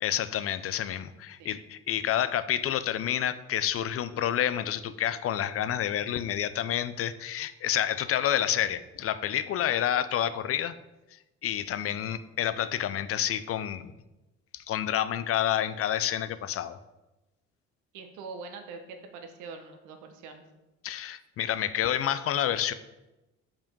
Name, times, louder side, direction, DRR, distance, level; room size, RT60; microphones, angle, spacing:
voice 1, 0.0-10.7 11.4-13.9 14.5-16.8 20.8-22.7, left 11 dB, 50° left, 13 dB, 0.5 m, -29 dB
voice 2, 8.3-8.7 12.1-12.2 17.9-20.4, right 4 dB, 80° right, 6 dB, 1.1 m, -44 dB
5.2 x 5.0 x 5.3 m, 1.0 s
supercardioid pair, 80°, 29 cm